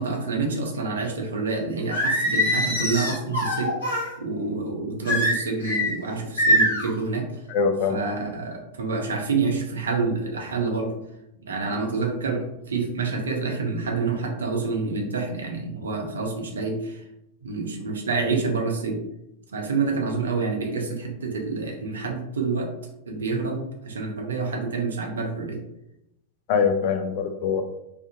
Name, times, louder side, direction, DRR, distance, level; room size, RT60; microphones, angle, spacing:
voice 1, 0.0-7.3 7.9-10.9 11.5-17.0 17.4-19.0 19.5-22.7 23.1-25.6, right 4 dB, 70° right, 2 dB, 0.5 m, -27 dB
Singing, 1.9-4.1 5.1-5.9 6.4-6.9, equal, 65° left, 1.0 m, -23 dB
voice 2, 7.5-8.0 26.5-27.6, left 6 dB, 45° left, 6 dB, 0.4 m, -23 dB
2.5 x 2.4 x 2.4 m, 0.84 s
figure-of-eight pair, 90°, 0 cm